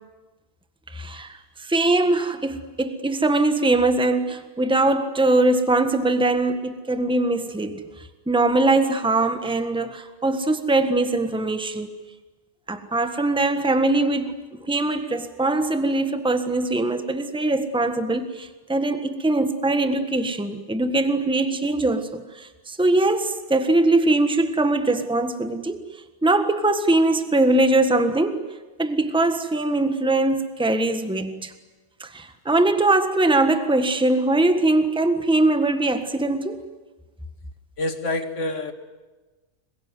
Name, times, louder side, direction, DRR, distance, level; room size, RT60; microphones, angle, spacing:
voice 1, 0.9-7.8 8.3-11.9 12.7-25.8 26.2-28.4 28.8-31.5 32.0-36.6, right 2 dB, 5° right, 1.4 m, -22 dB
voice 2, 37.8-38.7, left 2 dB, 60° left, 2.3 m, -27 dB
27.0 x 22.0 x 9.6 m
omnidirectional pair, 1.5 m